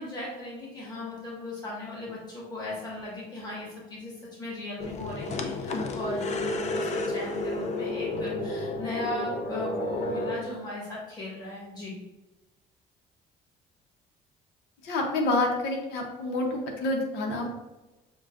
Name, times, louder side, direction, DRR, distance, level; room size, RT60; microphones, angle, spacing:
voice 1, 0.0-4.1 4.4-11.9, left 2 dB, 25° left, -6 dB, 1.5 m, -37 dB
sound 1, 4.8-10.4, left 2 dB, 45° left, 0.4 m, -31 dB
voice 2, 14.8-17.5, left 2 dB, 90° left, 1 dB, 0.8 m, -28 dB
6.1 x 2.2 x 2.5 m, 1.0 s
cardioid pair, 110°, 17 cm